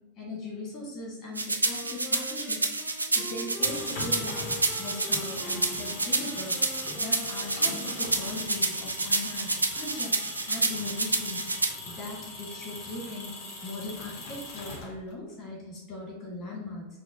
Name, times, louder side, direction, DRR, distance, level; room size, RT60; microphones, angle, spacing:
voice 1, 0.2-2.6 3.1-4.5 4.8-6.6 7.0-11.4 11.9-13.3 13.6-16.9, left 2 dB, 35° left, -3 dB, 1.3 m, -39 dB
sound 1, 1.4-11.7, right 3 dB, 80° right, 0.3 m, -29 dB
Wind instrument woodwind instrument, 1.6-8.3, equal, ahead, 0.5 m, -44 dB
sound 2, 3.5-15.2, left 2 dB, 50° left, 0.8 m, -41 dB
6.0 x 2.2 x 2.5 m, 1.0 s
figure-of-eight pair, 90°, 0 cm